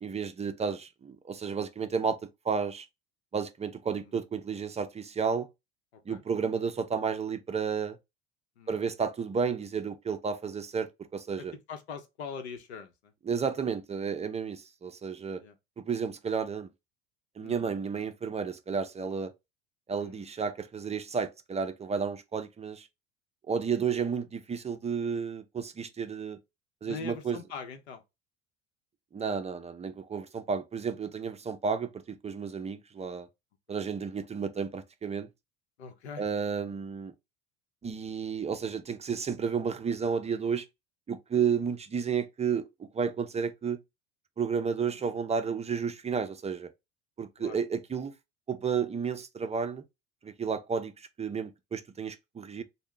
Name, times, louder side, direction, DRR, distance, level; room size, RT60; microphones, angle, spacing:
voice 1, 0.0-2.9 3.3-5.5 6.1-8.0 8.7-11.5 13.3-15.4 15.8-16.7 17.4-19.3 19.9-22.9 23.5-26.4 26.8-27.4 29.1-33.3 33.7-35.3 36.2-37.1 37.8-40.7 41.1-43.8 44.4-46.7 47.2-48.1 48.5-49.8 50.2-52.6, right 6 dB, 20° right, 0.5 m, -32 dB
voice 2, 5.9-6.2 8.6-8.8 11.4-13.1 15.4-15.6 17.4-17.7 20.0-20.2 26.8-28.0 33.7-33.8 35.8-36.2 41.6-41.7 44.8-45.0 47.4-47.6, left 6 dB, 85° left, 0.9 m, -43 dB
3.0 x 2.2 x 3.7 m
hypercardioid pair, 80°, 32 cm